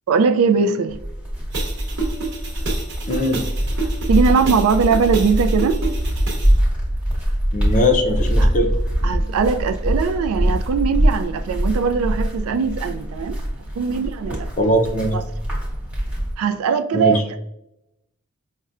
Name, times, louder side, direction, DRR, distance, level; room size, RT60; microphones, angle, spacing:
voice 1, 0.1-1.0 4.1-5.8 8.4-8.5 9.0-13.4 13.8-14.8 15.1-15.2 16.4-17.4, right 5 dB, 75° right, 0.3 m, -20 dB
sound 1, 0.9-16.3, equal, 5° right, 1.1 m, -23 dB
sound 2, 1.5-6.5, right 4 dB, 55° right, 0.9 m, -30 dB
voice 2, 3.1-3.4 7.5-8.7 14.6-15.1 16.9-17.2, left 1 dB, 35° left, 0.5 m, -20 dB
5.6 x 2.1 x 2.4 m
head